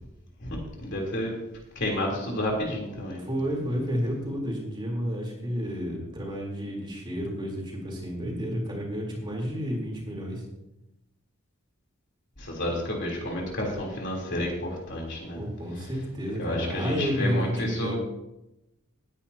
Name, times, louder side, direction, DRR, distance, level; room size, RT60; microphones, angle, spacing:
voice 1, 0.4-1.3 1.8-3.2 12.4-15.4 16.4-17.9, left 1 dB, 55° left, -1 dB, 3.6 m, -30 dB
voice 2, 3.2-10.4 15.3-17.9, equal, 25° right, -2 dB, 3.7 m, -31 dB
19.0 x 10.0 x 2.9 m, 0.88 s
head